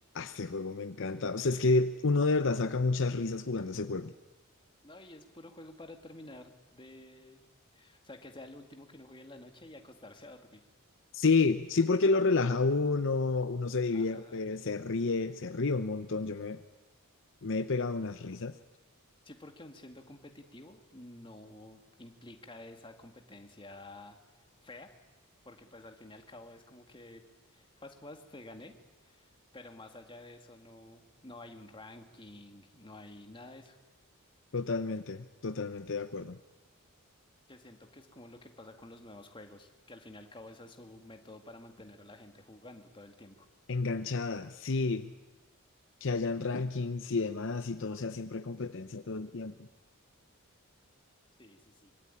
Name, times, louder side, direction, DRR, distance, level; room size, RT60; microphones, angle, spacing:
voice 1, 0.1-4.1 11.1-16.6 17.4-18.5 34.5-36.4 43.7-45.1 46.0-49.5, left 3 dB, 55° left, 10 dB, 0.8 m, -30 dB
voice 2, 4.8-7.5 7.7-10.6 13.9-14.4 19.3-24.9 25.4-28.7 29.0-33.8 37.5-43.5 51.4-51.9, left 2 dB, 20° left, 5 dB, 2.2 m, -51 dB
24.5 x 23.0 x 9.9 m, 1.2 s
head